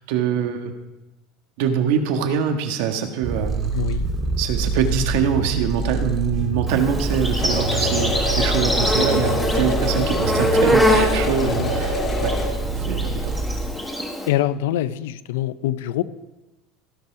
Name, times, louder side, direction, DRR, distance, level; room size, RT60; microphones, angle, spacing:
voice 1, 0.1-0.7 1.6-3.7 4.4-12.3 12.9-13.3, right 7 dB, 70° right, 6 dB, 1.4 m, -24 dB
Purr, 3.2-13.6, right 3 dB, 30° right, 1.8 m, -26 dB
voice 2, 3.7-4.1 11.4-11.7 12.1-12.2 14.3-16.0, left 13 dB, 90° left, 16 dB, 0.5 m, -24 dB
Insect, 6.7-14.3, left 1 dB, 5° left, 1.5 m, -24 dB
sound 1, 7.4-12.5, left 2 dB, 25° left, 2.1 m, -26 dB
16.5 x 5.7 x 5.9 m, 1.1 s
supercardioid pair, 150°, 0 cm